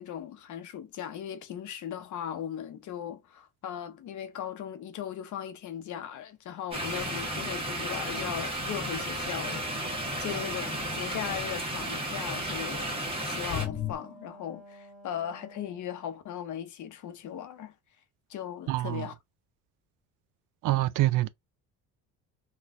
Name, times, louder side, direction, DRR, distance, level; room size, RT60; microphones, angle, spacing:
voice 1, 0.0-9.8 10.2-13.0 13.2-17.7 18.3-19.1, left 9 dB, 60° left, 0.9 m, -38 dB
sound 1, 6.7-13.7, right 1 dB, 15° right, 1.5 m, -33 dB
Wind instrument woodwind instrument, 9.3-15.9, right 1 dB, ahead, 1.6 m, -51 dB
sound 2, 13.5-14.0, left 11 dB, 35° left, 0.5 m, -32 dB
voice 2, 18.7-19.1 20.6-21.3, right 16 dB, 65° right, 0.5 m, -26 dB
4.0 x 2.4 x 2.5 m
cardioid pair, 95°, 34 cm